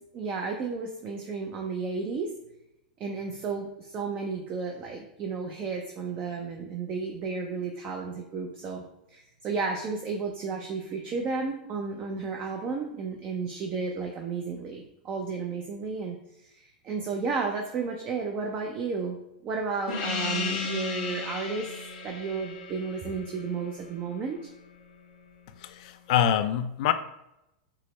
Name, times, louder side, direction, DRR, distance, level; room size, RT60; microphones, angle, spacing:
voice 1, 0.1-2.3 3.0-8.8 9.1-19.2 19.4-21.7 22.0-24.5, right 4 dB, 30° right, 0.4 m, -33 dB
Gong, 19.9-24.9, left 5 dB, 80° left, 1.1 m, -35 dB
voice 2, 25.6-26.9, left 10 dB, 60° left, 0.3 m, -25 dB
4.6 x 2.0 x 3.0 m
hypercardioid pair, 130°, 4 cm